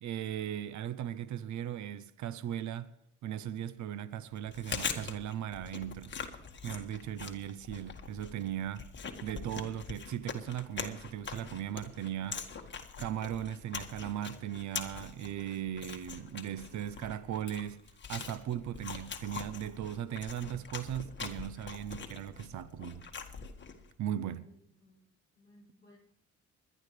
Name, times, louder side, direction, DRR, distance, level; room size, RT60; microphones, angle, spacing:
voice 1, 0.0-2.9 3.2-6.1 6.6-8.9 9.2-12.4 13.0-17.8 18.1-23.1 24.0-24.4, right 10 dB, 70° right, 0.7 m, -38 dB
Chewing mastication, 4.4-23.9, left 6 dB, 35° left, 1.7 m, -43 dB
voice 2, 24.3-25.1 25.3-26.0, left 1 dB, 15° left, 7.5 m, -61 dB
20.5 x 12.0 x 3.3 m
cardioid pair, 90°, 30 cm